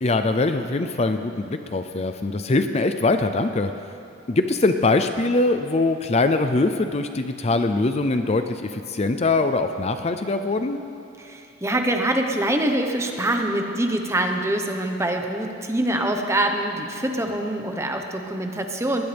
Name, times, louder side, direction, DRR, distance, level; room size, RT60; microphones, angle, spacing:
voice 1, 0.0-3.7 4.3-10.8, left 3 dB, 35° left, 8 dB, 0.5 m, -22 dB
voice 2, 11.2-19.0, right 1 dB, 15° right, 3 dB, 1.2 m, -24 dB
20.0 x 19.5 x 3.5 m, 2.7 s
head